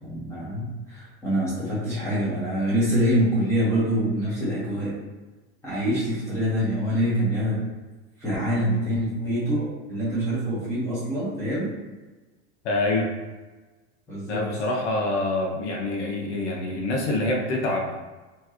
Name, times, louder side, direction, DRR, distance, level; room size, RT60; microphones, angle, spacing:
voice 1, 0.0-4.9 5.6-7.6 8.2-11.7 14.1-14.4, equal, 10° left, -10 dB, 1.1 m, -25 dB
voice 2, 12.6-13.1 14.3-18.0, left 2 dB, 75° left, -1 dB, 1.0 m, -26 dB
4.4 x 3.1 x 2.9 m, 1.2 s
supercardioid pair, 170°, 34 cm